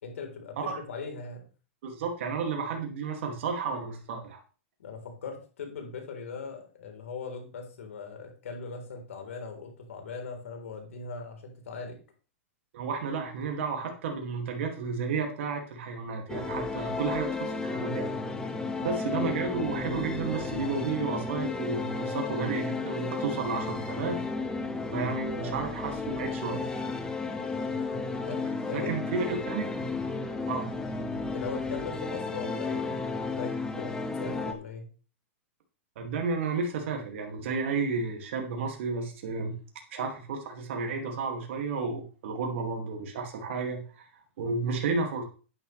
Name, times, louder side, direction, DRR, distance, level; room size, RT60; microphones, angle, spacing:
voice 1, 0.0-1.5 4.8-12.0 16.8-16.9 25.3-25.6 28.2-29.2 31.0-34.9, left 4 dB, 80° left, 3 dB, 3.8 m, -40 dB
voice 2, 1.8-4.4 12.7-18.1 18.8-24.2 24.9-26.6 28.7-29.7 30.5-30.7 36.0-39.6 39.9-44.1 44.4-45.2, right 4 dB, 65° right, 2 dB, 2.3 m, -32 dB
sound 1, 16.3-34.5, left 3 dB, 10° left, 1.6 m, -33 dB
10.5 x 9.2 x 3.3 m, 0.36 s
hypercardioid pair, 120°, 7 cm